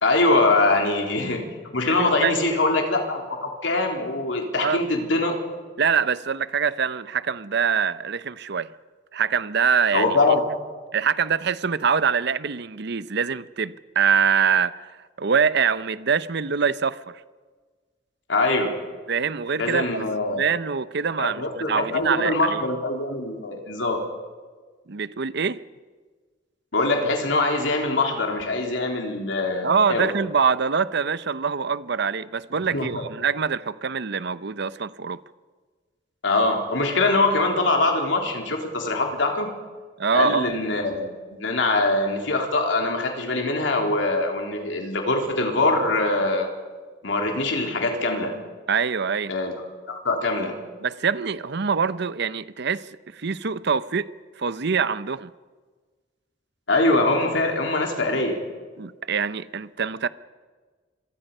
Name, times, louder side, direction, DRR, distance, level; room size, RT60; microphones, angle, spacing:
voice 1, 0.0-1.4 1.7-5.4 9.9-10.4 18.3-18.7 19.6-20.4 21.2-24.0 26.7-30.1 32.7-33.0 36.2-39.5 40.1-46.5 47.0-48.3 49.3-49.5 50.0-50.5 56.7-58.4, left 2 dB, 70° left, 3.7 m, -23 dB
voice 2, 1.9-2.5 4.5-4.8 5.8-8.7 9.1-10.2 10.9-14.9 15.2-17.1 19.1-22.6 24.9-25.6 29.6-35.2 40.0-40.5 48.7-49.3 50.8-54.1 54.4-55.3 58.8-60.1, right 6 dB, 65° right, 0.8 m, -24 dB
27.5 x 23.5 x 5.5 m
head